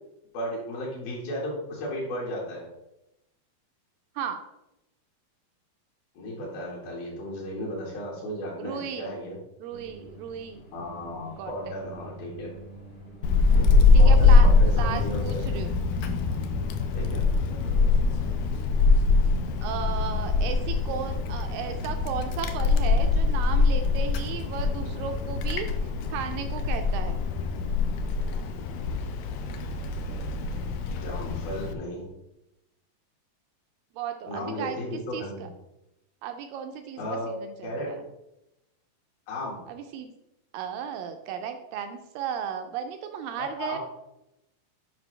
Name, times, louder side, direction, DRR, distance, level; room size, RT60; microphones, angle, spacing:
voice 1, 0.3-2.7 6.2-9.4 10.7-12.5 13.5-15.5 16.9-17.3 30.9-32.1 34.3-35.5 37.0-37.3 37.6-37.9 39.3-39.6 43.4-43.8, left 1 dB, 70° left, -4 dB, 3.4 m, -35 dB
voice 2, 8.6-9.1 9.6-10.6 11.4-11.8 13.9-15.8 19.6-25.7 26.1-27.2 34.0-34.8 35.1-35.5 36.2-38.0 39.7-40.1 40.5-43.8, right 8 dB, 85° right, 7 dB, 2.0 m, -35 dB
sound 1, 9.7-28.1, right 1 dB, 45° left, 1.2 m, -46 dB
Wind, 13.2-31.7, left 4 dB, 85° left, 2.0 m, -23 dB
9.5 x 5.3 x 3.2 m, 0.89 s
omnidirectional pair, 4.5 m